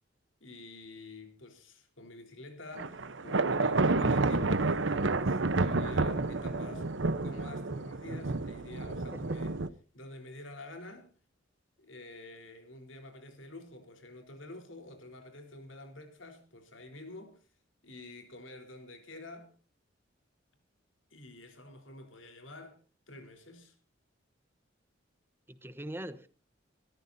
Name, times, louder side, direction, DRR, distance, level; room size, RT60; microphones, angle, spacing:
voice 1, 0.4-9.5 9.9-11.1 11.8-17.5 17.8-19.5 21.1-22.8 23.1-23.8, left 2 dB, 75° left, 4.0 m, -48 dB
sound 1, 2.8-9.7, right 3 dB, 65° right, 0.9 m, -30 dB
voice 2, 9.0-9.4 25.5-26.3, right 1 dB, 10° right, 1.0 m, -42 dB
25.0 x 14.0 x 2.8 m
head